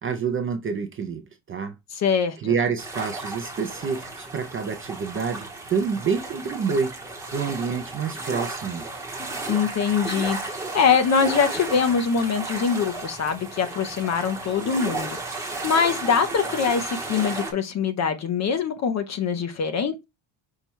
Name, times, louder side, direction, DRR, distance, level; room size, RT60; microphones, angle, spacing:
voice 1, 0.0-1.8 2.4-6.9 7.3-8.9, right 6 dB, 30° right, 0.4 m, -27 dB
voice 2, 1.9-2.5 9.5-19.9, left 6 dB, 35° left, 0.4 m, -23 dB
sound 1, 2.8-17.5, right 3 dB, 5° right, 0.8 m, -34 dB
5.5 x 2.2 x 4.4 m
cardioid pair, 175°, 49 cm